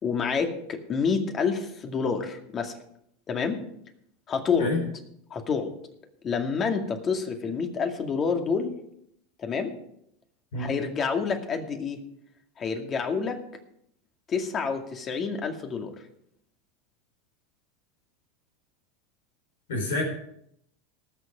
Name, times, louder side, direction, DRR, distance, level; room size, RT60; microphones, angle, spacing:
voice 1, 0.0-2.8 3.3-3.6 4.3-4.7 5.3-5.7 6.2-8.7 9.4-9.7 10.6-12.0 12.6-13.4 14.3-15.9, left 5 dB, 35° left, 5 dB, 2.2 m, -28 dB
voice 2, 19.7-20.0, left 2 dB, 80° left, -1 dB, 4.5 m, -27 dB
18.5 x 6.9 x 5.1 m, 0.72 s
hypercardioid pair, 95°, 0 cm